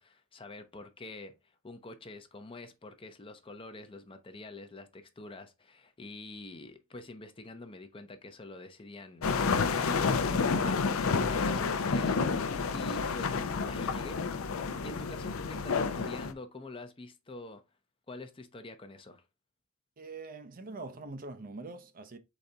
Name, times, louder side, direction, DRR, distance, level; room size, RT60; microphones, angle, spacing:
voice 1, 0.0-14.2 14.6-17.6 18.1-19.2, left 2 dB, 25° left, 0.6 m, -47 dB
sound 1, 9.2-16.3, left 5 dB, 70° left, 0.5 m, -29 dB
voice 2, 20.0-22.2, right 3 dB, 40° right, 0.5 m, -43 dB
4.1 x 3.9 x 3.3 m
head